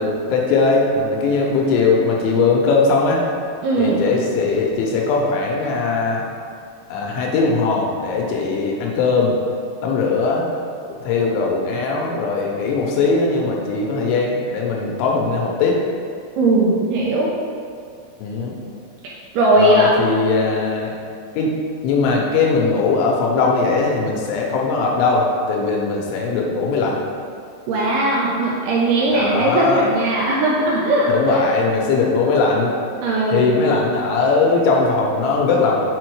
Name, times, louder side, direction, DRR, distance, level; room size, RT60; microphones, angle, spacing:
voice 1, 0.0-3.2 3.8-6.2 6.9-9.4 9.8-10.5 11.0-15.8 18.2-18.5 19.6-20.9 21.3-21.6 21.8-27.0 29.1-29.8 31.1-32.7 33.3-35.8, left 4 dB, 90° left, -1 dB, 3.3 m, -19 dB
voice 2, 3.6-4.2 16.4-17.3 19.3-19.9 27.7-31.5 33.0-33.5, right 1 dB, 75° right, -4 dB, 2.5 m, -18 dB
7.4 x 4.3 x 4.8 m, 2.2 s
omnidirectional pair, 5.3 m